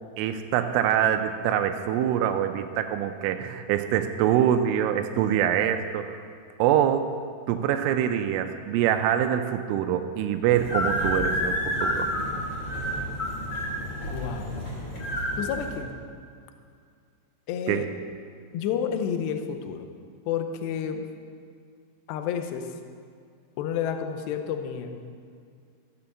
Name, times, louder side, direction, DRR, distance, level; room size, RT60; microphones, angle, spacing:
voice 1, 0.2-6.1 6.6-7.1 7.5-12.1 17.7-17.8, right 10 dB, 90° right, 7 dB, 3.2 m, -24 dB
sound 1, 10.5-15.8, equal, 40° left, 1.1 m, -29 dB
voice 2, 14.1-14.5 15.4-15.9 17.5-17.9 18.5-19.9 20.3-21.1 22.1-22.7 23.6-25.1, left 8 dB, 85° left, 6 dB, 2.6 m, -30 dB
14.0 x 7.7 x 7.1 m, 2.2 s
omnidirectional pair, 5.6 m